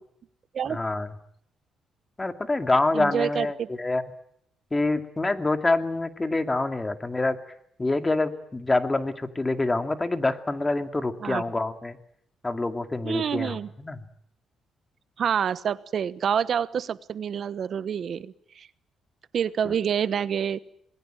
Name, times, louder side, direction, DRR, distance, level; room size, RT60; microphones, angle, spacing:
voice 1, 0.7-1.1 2.2-4.0 4.7-7.4 7.8-12.0 12.4-14.0 19.6-19.8, left 2 dB, 20° left, 8 dB, 2.3 m, -26 dB
voice 2, 2.9-3.7 11.2-11.4 13.0-13.7 15.2-18.7 19.3-20.6, right 8 dB, 55° right, 16 dB, 1.1 m, -27 dB
26.5 x 20.5 x 9.0 m, 0.69 s
cardioid pair, 90°, 0 cm